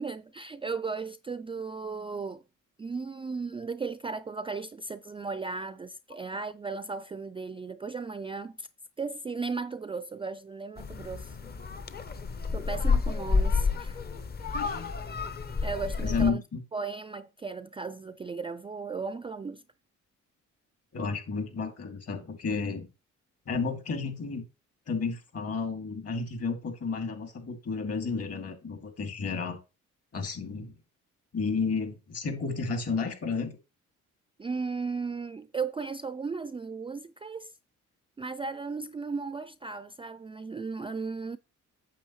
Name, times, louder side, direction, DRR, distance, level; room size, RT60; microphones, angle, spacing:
voice 1, 0.0-2.4 2.8-8.7 9.0-11.4 12.5-14.0 14.5-14.9 15.6-16.4 16.7-19.6 34.4-37.5 38.2-41.4, right 4 dB, 20° right, 0.3 m, -36 dB
sound 1, 10.8-16.3, left 4 dB, 30° left, 0.7 m, -30 dB
voice 2, 14.5-14.9 16.0-16.6 20.9-22.9 23.5-24.4 24.9-29.6 30.1-30.8 31.3-33.6, left 4 dB, 55° left, 2.6 m, -32 dB
8.8 x 7.0 x 3.1 m
cardioid pair, 90°, 30 cm